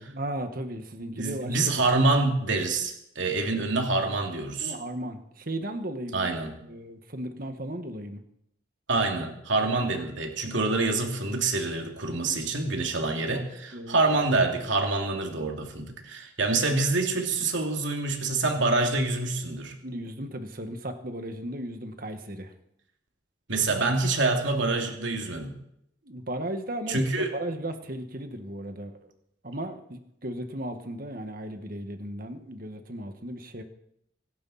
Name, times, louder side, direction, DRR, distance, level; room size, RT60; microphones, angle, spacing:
voice 1, 0.0-2.0 4.6-6.3 6.6-8.2 12.2-14.0 19.8-22.5 26.0-29.1 29.4-33.6, right 1 dB, 45° right, 7 dB, 1.7 m, -36 dB
voice 2, 1.2-4.7 6.1-6.5 8.9-19.7 23.5-25.6 26.9-27.3, right 3 dB, 70° right, 2 dB, 2.8 m, -26 dB
24.5 x 11.5 x 4.3 m, 0.76 s
head